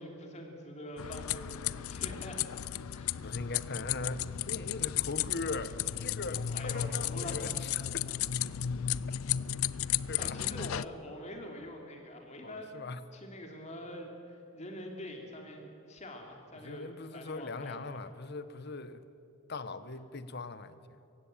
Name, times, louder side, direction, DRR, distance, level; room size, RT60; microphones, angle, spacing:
voice 1, 0.0-2.4 2.9-3.2 6.5-7.5 10.2-12.8 13.1-18.0, left 1 dB, 30° left, 2 dB, 3.0 m, -45 dB
sound 1, 1.0-10.8, left 10 dB, 80° left, 0.5 m, -34 dB
voice 2, 3.1-8.0 10.1-10.4 12.4-13.0 16.6-19.1 19.5-20.8, left 3 dB, 50° left, 13 dB, 1.0 m, -40 dB
25.0 x 16.0 x 9.0 m, 2.8 s
head